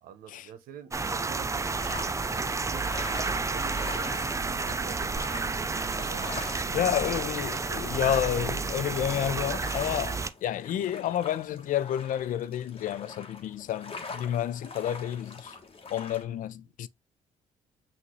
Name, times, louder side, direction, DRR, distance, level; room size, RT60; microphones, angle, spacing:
voice 1, 0.0-1.9 2.2-5.4 6.1-6.4 16.2-16.6, right 8 dB, 70° right, 0.8 m, -48 dB
sound 1, 0.9-10.3, right 4 dB, 20° right, 0.5 m, -31 dB
sound 2, 1.0-16.2, left 4 dB, 35° left, 1.3 m, -44 dB
voice 2, 6.7-15.6 15.9-16.9, left 11 dB, 60° left, 0.4 m, -30 dB
5.9 x 2.6 x 3.1 m
hypercardioid pair, 55°, 15 cm